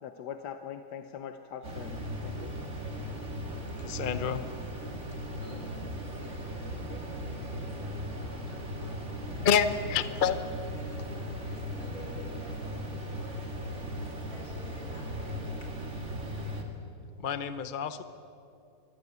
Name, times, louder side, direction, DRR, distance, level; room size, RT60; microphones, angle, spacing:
voice 1, 0.0-2.6, left 8 dB, 90° left, 8 dB, 1.4 m, -42 dB
sound 1, 1.6-16.6, equal, 45° right, 2.5 m, -37 dB
voice 2, 3.8-4.5 9.4-10.4 17.2-18.0, left 7 dB, 40° left, 12 dB, 0.8 m, -28 dB
voice 3, 5.3-9.5 10.0-10.1 10.7-15.7, left 1 dB, 70° left, 1 dB, 4.9 m, -51 dB
24.0 x 15.0 x 9.4 m, 2.6 s
omnidirectional pair, 1.7 m